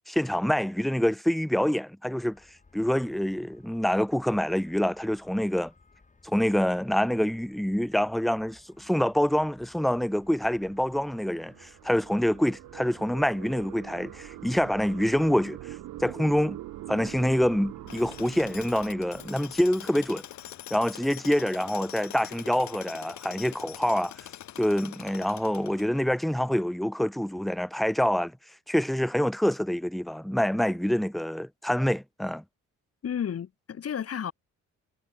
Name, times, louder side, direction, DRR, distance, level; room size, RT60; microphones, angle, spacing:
voice 1, 0.1-2.4 2.7-5.7 6.2-15.7 16.0-16.6 16.9-20.2 20.7-24.1 24.6-28.3 28.7-32.4, equal, ahead, 0.7 m, -26 dB
sound 1, 2.2-19.2, left 3 dB, 25° left, 7.7 m, -60 dB
sound 2, 10.2-20.6, right 16 dB, 90° right, 2.3 m, -44 dB
Tools, 17.9-26.2, left 13 dB, 70° left, 1.0 m, -44 dB
voice 2, 33.0-34.3, left 8 dB, 50° left, 2.4 m, -32 dB
cardioid pair, 90°, 30 cm